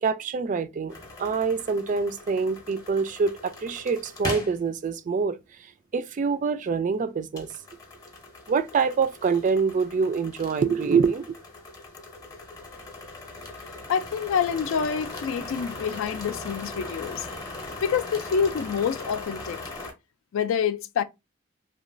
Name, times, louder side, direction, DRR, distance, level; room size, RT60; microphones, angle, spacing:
voice 1, 0.0-5.4 5.9-7.5 8.5-11.4, right 5 dB, 40° right, 0.3 m, -25 dB
sound 1, 0.9-4.6 7.4-19.9, left 2 dB, 20° left, 0.7 m, -39 dB
voice 2, 13.9-17.3 17.8-19.6 20.3-21.0, left 7 dB, 70° left, 0.3 m, -27 dB
3.0 x 2.2 x 2.5 m
head